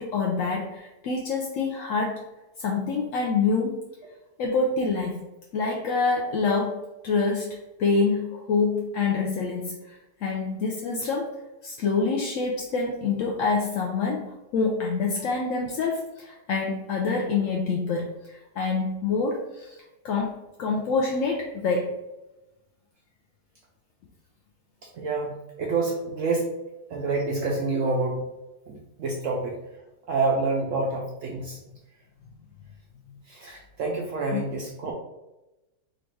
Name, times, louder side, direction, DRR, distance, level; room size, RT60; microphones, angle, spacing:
voice 1, 0.0-2.2 2.6-3.8 4.4-5.3 5.5-11.3 11.6-21.9 34.3-34.4, left 4 dB, 70° left, 0 dB, 0.8 m, -26 dB
voice 2, 24.9-25.3 25.6-26.5 26.9-28.3 28.7-29.6 30.1-31.6 33.3-34.9, right 3 dB, 70° right, -1 dB, 0.8 m, -27 dB
3.8 x 2.4 x 4.5 m, 1.0 s
omnidirectional pair, 1.8 m